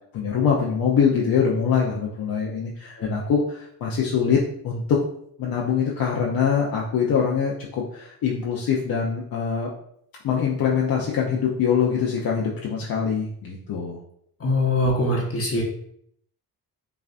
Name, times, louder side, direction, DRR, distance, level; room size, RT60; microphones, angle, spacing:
voice 1, 0.1-5.0 5.4-9.7 10.2-14.0, left 6 dB, 65° left, -3 dB, 0.7 m, -23 dB
voice 2, 14.4-15.6, left 1 dB, 40° left, -1 dB, 0.9 m, -22 dB
5.5 x 2.4 x 2.5 m, 0.68 s
cardioid pair, 80°, 37 cm